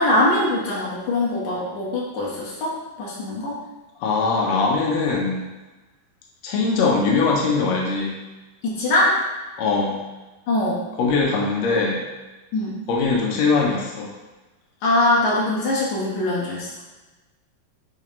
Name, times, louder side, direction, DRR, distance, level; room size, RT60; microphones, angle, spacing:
voice 1, 0.0-3.6 8.6-9.2 10.5-10.8 12.5-12.8 14.8-16.7, left 1 dB, 55° left, -6 dB, 2.5 m, -22 dB
voice 2, 4.0-5.5 6.4-8.1 9.6-10.0 11.0-12.0 12.9-14.1, left 4 dB, 90° left, -2 dB, 1.5 m, -21 dB
9.0 x 3.4 x 3.2 m, 1.1 s
omnidirectional pair, 4.4 m